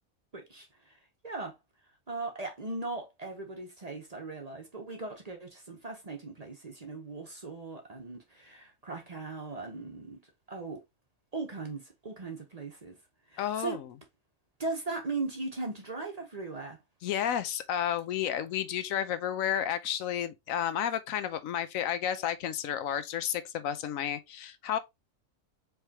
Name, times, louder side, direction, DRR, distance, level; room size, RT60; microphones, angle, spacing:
voice 1, 0.3-1.6 2.1-10.2 10.5-10.8 11.3-13.0 13.3-13.8 14.6-16.8, right 3 dB, 35° right, 0.8 m, -38 dB
voice 2, 13.4-13.8 17.0-24.8, left 10 dB, 80° left, 1.0 m, -31 dB
4.8 x 3.3 x 2.8 m
omnidirectional pair, 1.4 m